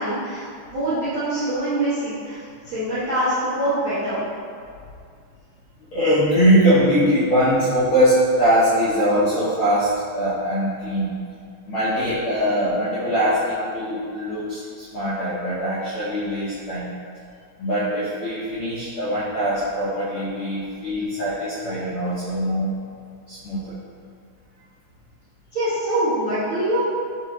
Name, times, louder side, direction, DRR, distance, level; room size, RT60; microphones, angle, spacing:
voice 1, 0.0-2.4 2.6-4.2 25.5-26.9, right 1 dB, 40° right, -14 dB, 1.1 m, -24 dB
voice 2, 5.9-11.1 11.7-16.9 17.6-22.7 23.3-23.8, equal, 75° left, -10 dB, 1.2 m, -21 dB
6.3 x 2.5 x 2.9 m, 2.3 s
omnidirectional pair, 3.4 m